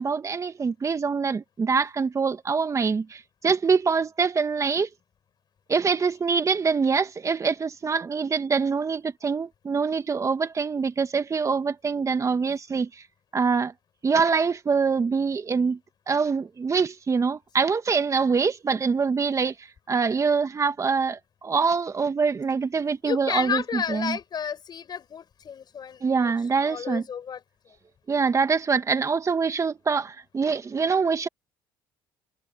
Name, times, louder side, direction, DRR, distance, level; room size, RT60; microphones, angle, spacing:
voice 1, 0.0-4.9 5.7-13.0 13.3-13.7 14.0-15.8 16.1-24.2 26.0-27.0 28.1-31.3, right 5 dB, 35° right, 1.9 m, -24 dB
voice 2, 23.0-26.3 26.6-27.7, left 7 dB, 45° left, 7.8 m, -32 dB
supercardioid pair, 70°, 10 cm